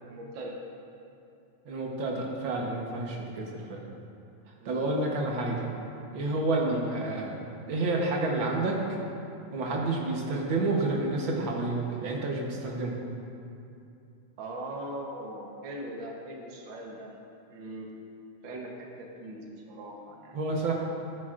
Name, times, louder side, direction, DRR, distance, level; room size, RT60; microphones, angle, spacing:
voice 1, 0.1-0.5 3.3-3.5 4.6-4.9 6.6-6.8 14.4-17.1 17.5-17.9 18.4-20.6, right 1 dB, 85° right, -1 dB, 1.0 m, -40 dB
voice 2, 1.6-3.8 4.6-5.6 6.1-7.4 7.7-8.8 9.5-13.0 20.3-20.7, right 2 dB, 65° right, -1 dB, 1.2 m, -29 dB
15.0 x 11.0 x 2.5 m, 2.6 s
omnidirectional pair, 3.6 m